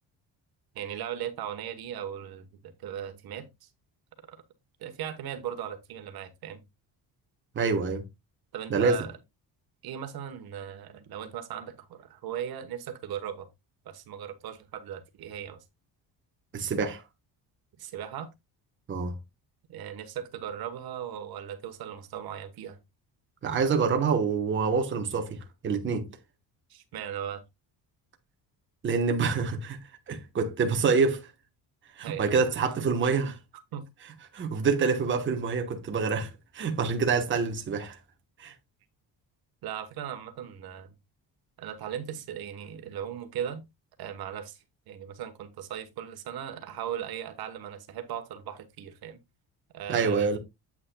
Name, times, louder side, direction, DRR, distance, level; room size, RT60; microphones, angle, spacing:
voice 1, 0.7-3.7 4.3-4.4 4.8-6.6 8.5-9.1 9.8-13.5 13.8-15.6 17.8-18.3 19.7-22.8 26.7-27.4 32.0-32.3 33.5-33.8 39.6-40.9 41.6-43.6 44.0-49.2 49.7-50.4, right 9 dB, 65° right, 1.3 m, -38 dB
voice 2, 7.5-8.0 8.7-9.0 16.5-17.0 18.9-19.2 23.4-26.1 28.8-29.8 30.1-31.2 32.0-33.4 34.3-38.0 38.4-38.5 49.9-50.4, right 5 dB, 30° right, 1.2 m, -26 dB
8.5 x 8.3 x 2.3 m
cardioid pair, 175°, 40 cm